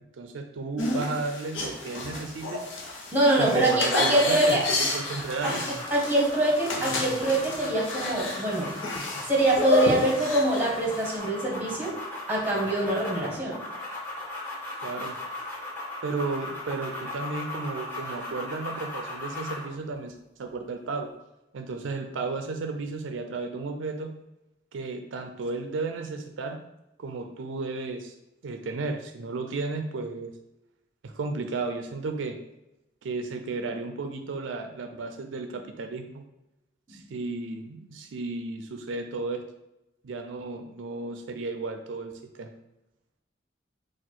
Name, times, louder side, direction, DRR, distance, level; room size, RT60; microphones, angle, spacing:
voice 1, 0.2-2.6 3.4-4.6 4.9-5.6 14.8-15.2 16.0-21.1 21.5-24.1 24.7-26.6 27.0-28.1 28.4-30.3 31.0-32.4 33.0-36.2 36.9-39.4 40.0-42.1 42.4-42.5, right 3 dB, 80° right, 6 dB, 0.4 m, -33 dB
sound 1, 0.8-11.2, left 2 dB, 80° left, 0.8 m, -31 dB
voice 2, 3.1-4.7 5.4-5.5 5.9-8.7 9.3-12.0 12.3-13.6 36.9-37.0, right 1 dB, 10° right, -3 dB, 1.2 m, -24 dB
sound 2, 3.2-19.7, left 2 dB, 10° left, 1.4 m, -38 dB
4.3 x 2.4 x 4.3 m, 0.91 s
head